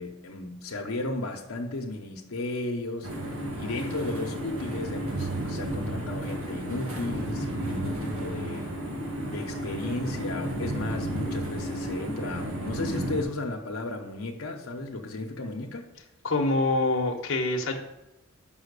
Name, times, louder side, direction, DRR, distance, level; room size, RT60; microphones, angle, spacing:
voice 1, 0.0-8.7 9.3-15.9, left 2 dB, 85° left, 1 dB, 1.0 m, -34 dB
sound 1, 3.0-13.2, right 1 dB, 90° right, 1.6 m, -32 dB
voice 2, 16.2-17.8, left 2 dB, 65° left, 1 dB, 1.0 m, -25 dB
5.8 x 5.6 x 6.6 m, 0.90 s
head